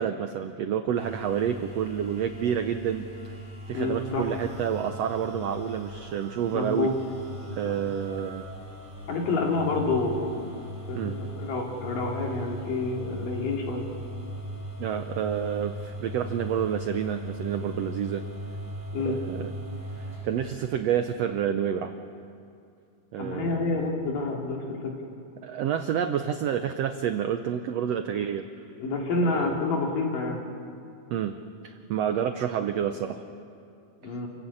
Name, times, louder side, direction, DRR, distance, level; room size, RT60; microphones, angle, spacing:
voice 1, 0.0-3.3 3.7-6.9 7.5-8.5 10.9-11.2 14.8-18.2 19.0-19.5 20.0-21.9 23.1-23.9 25.4-28.5 29.2-29.6 31.1-31.4 31.6-33.2 34.0-34.2, right 9 dB, 80° right, 8 dB, 1.4 m, -29 dB
sound 1, 0.9-20.5, right 1 dB, 20° left, 4.9 m, -39 dB
voice 2, 3.7-4.3 6.5-6.9 7.7-7.8 9.1-10.4 10.9-13.8 18.9-19.2 23.2-25.0 28.7-30.4 34.0-34.3, left 3 dB, 75° left, 0 dB, 4.4 m, -28 dB
28.0 x 15.5 x 8.6 m, 2.5 s
omnidirectional pair, 3.9 m